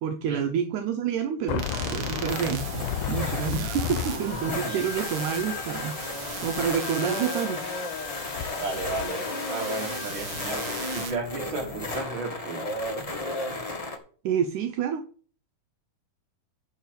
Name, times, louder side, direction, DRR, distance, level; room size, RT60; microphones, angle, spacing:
voice 1, 0.0-6.0 6.4-7.6 14.2-15.0, right 8 dB, 75° right, 5 dB, 2.2 m, -28 dB
sound 1, 1.5-11.0, left 11 dB, 80° left, 2.0 m, -35 dB
sound 2, 1.6-11.1, right 7 dB, 55° right, 1.7 m, -39 dB
sound 3, 1.7-14.0, left 2 dB, 40° left, 0.5 m, -34 dB
voice 2, 4.3-4.8 8.6-12.6, right 3 dB, 40° right, 0 dB, 3.3 m, -34 dB
11.0 x 4.1 x 7.7 m, 0.44 s
omnidirectional pair, 3.7 m